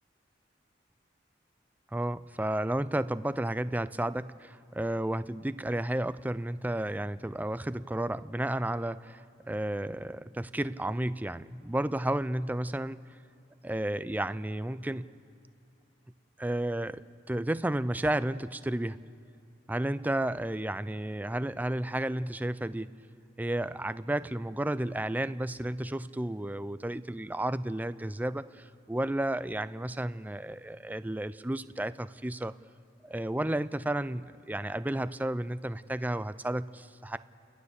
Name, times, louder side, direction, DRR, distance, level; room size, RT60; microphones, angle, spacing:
voice 1, 1.9-13.0 13.6-15.1 16.4-17.0 17.3-19.0 19.7-22.9 23.4-32.5 33.0-37.2, right 1 dB, 10° right, 14 dB, 0.4 m, -32 dB
30.0 x 13.5 x 6.9 m, 2.7 s
head